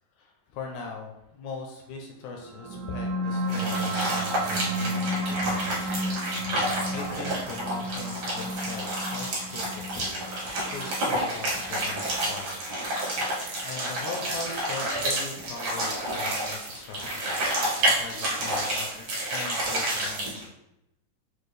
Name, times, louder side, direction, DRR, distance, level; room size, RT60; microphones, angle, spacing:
voice 1, 0.2-6.2 6.6-10.3 10.7-12.6 13.6-17.5 17.8-20.5, left 4 dB, 80° left, 1 dB, 1.8 m, -40 dB
sound 1, 2.5-13.4, equal, 80° right, 2.0 m, -33 dB
sound 2, 3.5-20.4, right 1 dB, 65° right, 1.0 m, -30 dB
6.0 x 2.3 x 3.3 m, 0.84 s
omnidirectional pair, 3.7 m